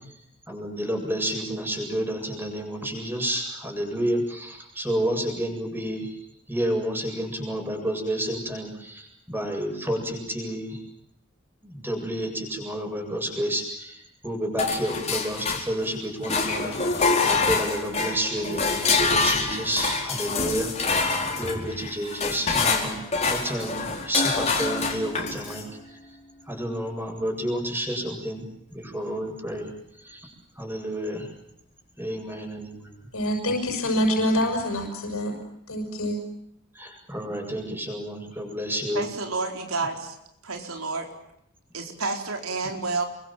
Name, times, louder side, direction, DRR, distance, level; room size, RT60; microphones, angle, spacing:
voice 1, 0.5-6.1 6.5-10.8 11.6-14.0 14.2-20.7 21.4-25.7 26.5-28.4 28.7-29.7 30.0-30.3 30.6-31.3 32.0-32.7 36.8-39.0, right 1 dB, 10° right, 3 dB, 7.8 m, -30 dB
sound 1, 14.6-15.9 16.2-25.7, left 4 dB, 30° left, 4.7 m, -26 dB
voice 2, 33.1-35.3 35.7-36.2, equal, 85° left, 2 dB, 6.6 m, -25 dB
voice 3, 38.9-40.2 40.4-41.1 41.7-43.0, right 3 dB, 85° right, 4 dB, 4.4 m, -30 dB
30.0 x 24.0 x 7.5 m, 0.77 s
head